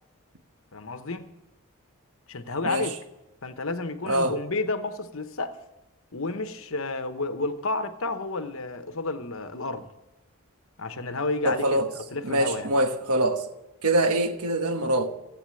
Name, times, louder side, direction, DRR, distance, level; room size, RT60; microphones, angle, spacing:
voice 1, 0.7-1.3 2.3-2.9 3.4-5.6 6.1-9.9 10.8-11.8 12.1-12.7, left 3 dB, 65° left, 1.0 m, -31 dB
voice 2, 4.1-4.4 11.4-11.9 12.2-13.5 13.8-15.1, right 1 dB, 85° right, 1.3 m, -24 dB
15.0 x 8.6 x 7.6 m
head